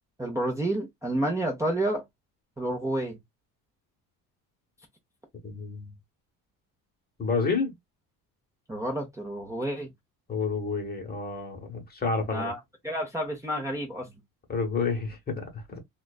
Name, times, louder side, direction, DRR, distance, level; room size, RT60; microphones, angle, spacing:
voice 1, 0.2-2.0 2.6-3.2 8.7-9.9 12.3-14.1, right 1 dB, 10° right, 0.6 m, -30 dB
voice 2, 5.4-5.9 7.2-7.7 10.3-12.5 14.5-15.8, left 4 dB, 25° left, 0.9 m, -29 dB
2.4 x 2.2 x 2.3 m
cardioid pair, 100°, 38 cm